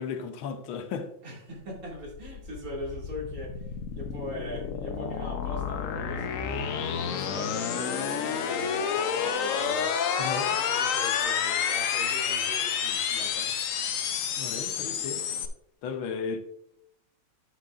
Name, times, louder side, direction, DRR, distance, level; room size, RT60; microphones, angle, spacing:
voice 1, 0.0-1.1 10.2-10.6 14.4-15.3 15.8-16.4, left 6 dB, 85° left, 1.6 m, -34 dB
voice 2, 1.2-6.7 7.1-9.9 10.4-13.6, equal, 45° right, 2.8 m, -41 dB
sound 1, 1.7-15.5, left 7 dB, 65° left, 0.8 m, -29 dB
9.8 x 7.7 x 2.4 m
omnidirectional pair, 2.1 m